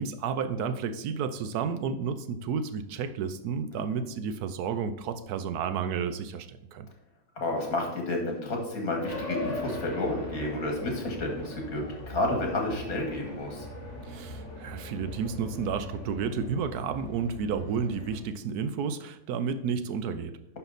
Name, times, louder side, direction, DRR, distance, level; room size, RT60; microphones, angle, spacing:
voice 1, 0.0-6.9 14.1-20.3, right 6 dB, 85° right, 10 dB, 1.2 m, -31 dB
voice 2, 3.7-4.0 7.4-13.7, left 2 dB, 70° left, 2 dB, 2.3 m, -31 dB
sound 1, 9.0-18.2, left 1 dB, 50° left, 2.2 m, -40 dB
9.9 x 5.8 x 4.1 m, 0.86 s
omnidirectional pair, 1.6 m